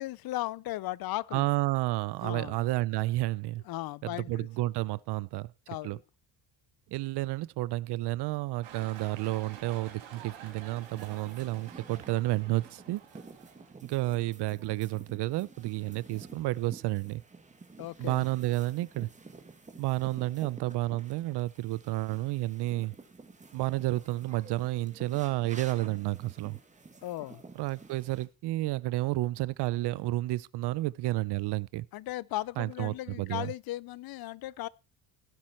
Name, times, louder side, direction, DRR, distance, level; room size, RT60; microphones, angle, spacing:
voice 1, 0.0-1.5 2.2-2.6 3.7-4.5 5.7-6.0 17.8-18.2 27.0-27.4 31.9-34.7, left 15 dB, 55° left, 0.5 m, -36 dB
voice 2, 1.3-3.6 4.0-5.5 5.8-6.0 6.9-13.0 13.8-17.2 18.0-19.1 19.8-22.9 23.5-26.6 27.6-31.9 32.6-33.5, right 17 dB, 65° right, 0.6 m, -31 dB
sound 1, 8.6-13.7, right 8 dB, 80° right, 4.3 m, -49 dB
sound 2, 10.8-28.2, right 3 dB, 15° right, 1.9 m, -51 dB
17.0 x 7.6 x 4.3 m
cardioid pair, 135°, 45 cm